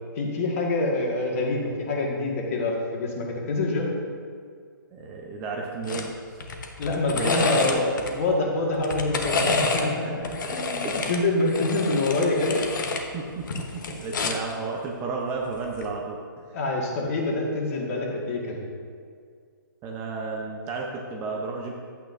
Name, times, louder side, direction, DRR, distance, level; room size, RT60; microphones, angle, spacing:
voice 1, 0.2-3.9 6.8-12.6 16.5-18.6, left 2 dB, 40° left, -1 dB, 1.8 m, -26 dB
voice 2, 4.9-6.4 7.1-7.8 9.6-9.7 10.0-10.1 10.4-11.1 13.1-16.2 19.8-21.7, right 4 dB, 20° right, -1 dB, 0.7 m, -32 dB
sound 1, 5.9-6.1 6.4-8.1 8.7-9.9 10.2-13.0 13.4-14.5 15.7-15.9, left 3 dB, 60° left, 1.1 m, -28 dB
11.0 x 8.5 x 2.6 m, 2.1 s
hypercardioid pair, 160°, 12 cm